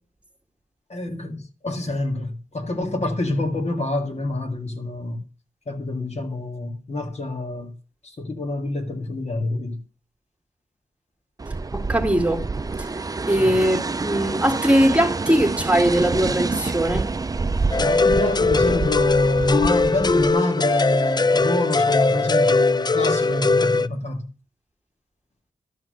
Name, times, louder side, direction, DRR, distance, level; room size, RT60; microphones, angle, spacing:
voice 1, 0.9-5.2 5.7-7.7 8.2-9.8 13.4-13.6 17.8-24.3, left 2 dB, 50° left, 2.0 m, -26 dB
sound 1, 11.4-20.3, right 3 dB, 25° right, 0.5 m, -27 dB
voice 2, 11.7-12.4 13.3-17.1, right 1 dB, 10° right, 2.0 m, -20 dB
sound 2, 17.7-23.9, left 3 dB, 30° left, 0.4 m, -20 dB
12.0 x 6.2 x 6.4 m
wide cardioid pair, 70°, 14 cm